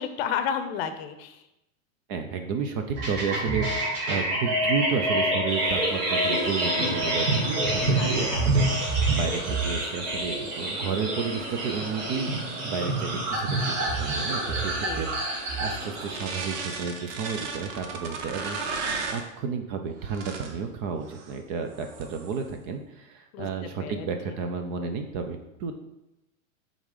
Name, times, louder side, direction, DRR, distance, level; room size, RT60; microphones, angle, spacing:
voice 1, 0.0-1.4 8.0-8.8 14.8-15.0 23.3-23.5 23.8-24.4, left 8 dB, 50° left, 9 dB, 0.7 m, -32 dB
voice 2, 2.1-25.7, right 5 dB, 30° right, 6 dB, 0.4 m, -32 dB
sound 1, 2.9-17.0, right 1 dB, 50° right, 2.2 m, -27 dB
sound 2, 5.5-19.3 20.0-20.6 21.1-21.4 21.7-22.4, right 4 dB, 65° right, 1.0 m, -37 dB
5.2 x 3.8 x 4.8 m, 0.90 s
supercardioid pair, 145°, 39 cm